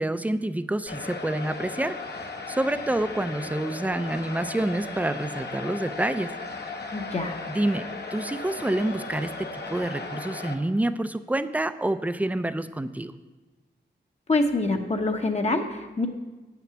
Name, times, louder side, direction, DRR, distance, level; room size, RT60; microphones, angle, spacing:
voice 1, 0.0-2.0 2.5-6.3 7.5-7.8 8.1-13.1, right 1 dB, 10° right, 11 dB, 0.4 m, -27 dB
sound 1, 0.9-10.5, left 3 dB, 60° left, 1.0 m, -36 dB
voice 2, 6.9-7.4 14.3-16.1, left 2 dB, 35° left, 3 dB, 0.9 m, -25 dB
8.5 x 6.0 x 6.8 m, 1.2 s
wide cardioid pair, 90°, 19 cm